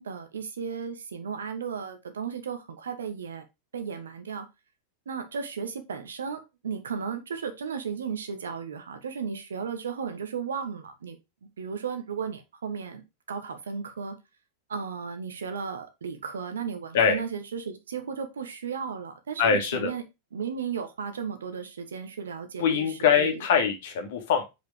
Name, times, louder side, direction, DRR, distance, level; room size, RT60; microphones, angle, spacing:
voice 1, 0.0-3.4 3.7-4.5 5.0-11.2 11.6-14.2 14.7-20.0 20.3-23.4, right 6 dB, 65° right, 8 dB, 1.3 m, -35 dB
voice 2, 19.4-19.9 22.6-24.4, left 7 dB, 55° left, 4 dB, 1.9 m, -23 dB
5.3 x 5.0 x 5.0 m, 0.24 s
figure-of-eight pair, 90°, 0 cm